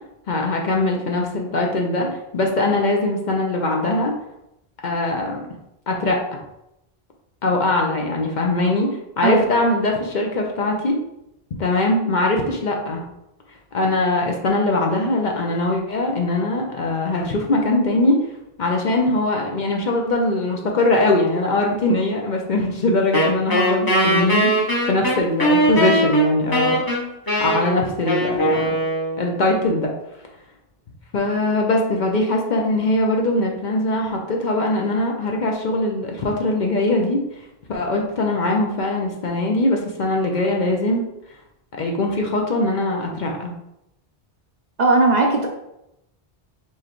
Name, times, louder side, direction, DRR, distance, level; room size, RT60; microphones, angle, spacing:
voice 1, 0.3-2.1 2.3-4.1 4.8-5.4 5.9-6.2 7.4-8.9 9.2-10.9 11.6-13.0 13.7-18.2 18.6-27.0 27.4-28.7 29.2-29.9 31.1-37.2 37.7-41.0 41.8-43.5, left 2 dB, 55° left, 1 dB, 0.7 m, -21 dB
voice 2, 9.2-9.5 44.8-45.5, right 3 dB, 50° right, 1 dB, 0.6 m, -17 dB
Wind instrument woodwind instrument, 23.1-29.4, equal, 25° left, 0.8 m, -20 dB
4.6 x 3.2 x 3.0 m, 0.86 s
omnidirectional pair, 1.0 m